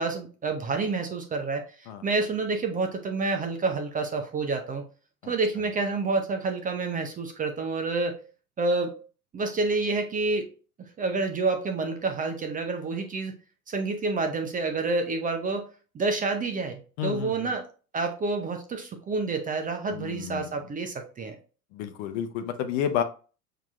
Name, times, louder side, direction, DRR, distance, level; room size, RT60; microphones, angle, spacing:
voice 1, 0.0-4.8 5.3-8.2 8.6-8.9 9.3-10.5 10.8-13.4 13.7-15.7 15.9-17.7 17.9-21.4, right 3 dB, 20° right, 5 dB, 0.5 m, -28 dB
voice 2, 17.0-17.5 19.9-20.5 21.7-23.0, left 9 dB, 55° left, 8 dB, 0.8 m, -30 dB
5.9 x 2.8 x 2.3 m, 0.36 s
hypercardioid pair, 90°, 44 cm